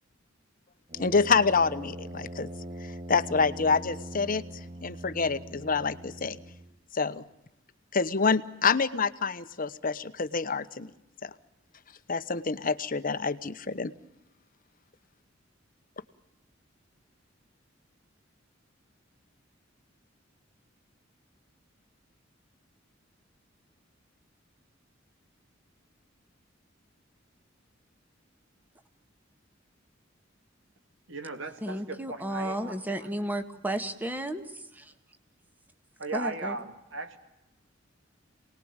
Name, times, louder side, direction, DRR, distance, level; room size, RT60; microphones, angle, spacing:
Brass instrument, 0.9-6.8, right 1 dB, 35° right, 1.5 m, -42 dB
voice 1, 1.0-2.5 2.8-4.4 4.8-6.4 6.9-7.2 7.9-10.9 11.2-11.3 12.1-13.9, left 4 dB, 45° left, 12 dB, 1.0 m, -27 dB
voice 2, 31.1-33.1 36.0-37.2, right 3 dB, 85° right, 7 dB, 3.0 m, -37 dB
voice 3, 31.6-34.9 36.1-36.5, right 1 dB, 10° right, 8 dB, 1.8 m, -33 dB
28.0 x 20.0 x 8.9 m, 0.89 s
head